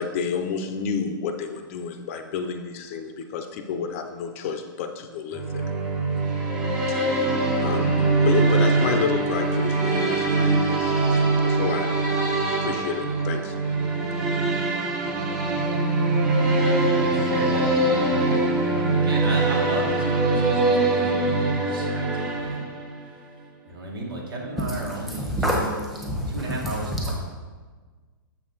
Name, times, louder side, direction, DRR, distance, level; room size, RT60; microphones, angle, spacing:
voice 1, 0.0-5.6 6.9-7.0 7.6-12.3 12.6-13.5, left 6 dB, 40° left, 6 dB, 0.6 m, -30 dB
sound 1, 5.3-23.0, right 2 dB, 30° right, 1.5 m, -23 dB
voice 2, 17.0-22.6 23.6-27.1, right 2 dB, 80° right, -2 dB, 2.1 m, -35 dB
voice 3, 24.6-27.1, equal, ahead, -4 dB, 1.2 m, -28 dB
7.3 x 5.3 x 4.0 m, 1.4 s
hypercardioid pair, 150°, 12 cm